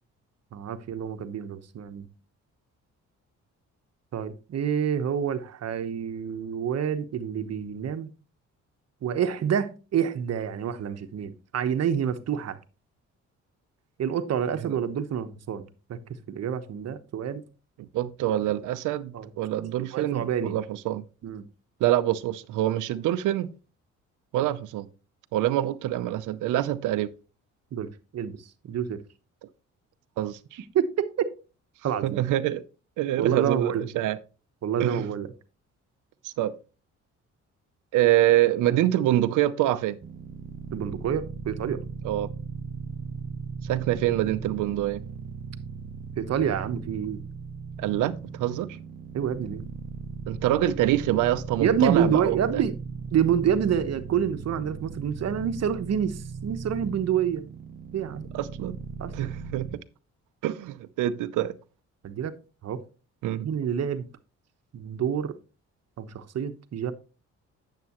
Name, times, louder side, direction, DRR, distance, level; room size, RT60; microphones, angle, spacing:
voice 1, 0.5-2.1 4.1-8.1 9.0-12.6 14.0-16.0 16.3-17.4 19.1-19.3 19.9-20.6 21.2-21.5 27.7-27.9 28.1-28.4 28.6-29.0 30.7-31.3 31.8-32.2 33.2-33.9 34.6-35.3 40.7-41.8 46.2-47.2 49.1-49.7 51.6-52.8 53.1-57.4 57.9-58.2 59.0-59.3 62.0-62.3 62.6-62.8 63.4-64.1 64.7-65.4 66.0-66.9, right 8 dB, 55° right, 1.1 m, -27 dB
voice 2, 17.8-21.0 21.8-23.5 24.3-24.9 25.3-27.1 30.2-30.6 32.0-32.6 33.0-34.2 34.8-35.0 36.2-36.5 37.9-40.0 42.0-42.3 43.6-45.0 47.8-48.7 50.3-52.6 58.3-58.8 59.1-59.7 60.4-61.5 63.2-63.5, right 13 dB, 85° right, 0.7 m, -25 dB
sound 1, 40.0-59.8, right 5 dB, 30° right, 0.9 m, -38 dB
9.4 x 7.6 x 3.0 m
cardioid pair, 90°, 30 cm